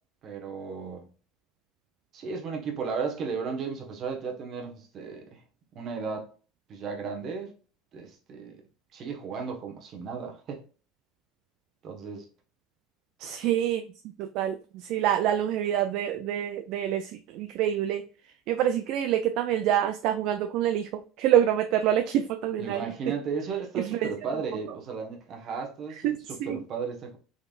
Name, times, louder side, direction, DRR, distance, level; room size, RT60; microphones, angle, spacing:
voice 1, 0.2-1.0 2.1-5.4 5.7-6.3 6.7-7.5 7.9-8.6 8.9-10.6 11.8-12.3 22.6-27.2, right 5 dB, 50° right, 1.2 m, -35 dB
voice 2, 13.2-13.8 14.2-23.1 23.8-24.1 25.9-26.6, right 11 dB, 65° right, 0.3 m, -27 dB
4.0 x 3.3 x 2.4 m
hypercardioid pair, 85°, 0 cm